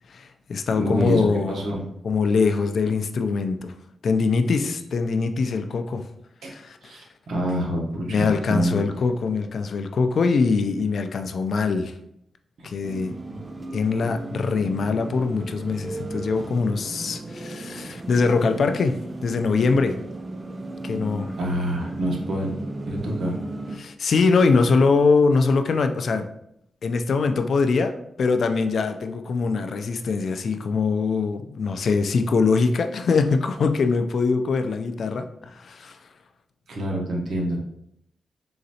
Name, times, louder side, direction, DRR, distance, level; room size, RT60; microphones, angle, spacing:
voice 1, 0.1-1.6 2.0-3.7 4.0-6.1 6.5-6.9 8.1-11.9 12.6-13.2 13.7-20.0 20.8-21.3 23.8-26.3 26.8-36.0, left 4 dB, 60° left, 0.3 m, -23 dB
voice 2, 0.7-1.8 4.5-4.7 6.4-6.5 6.8-8.8 12.6-12.7 21.3-22.5 22.9-23.4 36.7-37.6, equal, 70° right, 0.9 m, -27 dB
sound 1, 12.8-23.8, right 2 dB, 25° right, 0.3 m, -35 dB
3.8 x 3.1 x 2.8 m
wide cardioid pair, 135°, 0 cm